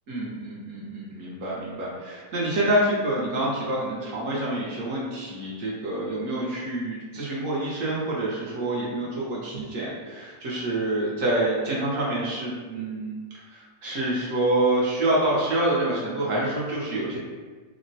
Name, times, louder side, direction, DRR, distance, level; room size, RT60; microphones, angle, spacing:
voice 1, 0.1-13.1 13.5-17.2, right 1 dB, 65° right, -5 dB, 0.8 m, -27 dB
3.6 x 2.0 x 2.7 m, 1.5 s
omnidirectional pair, 2.0 m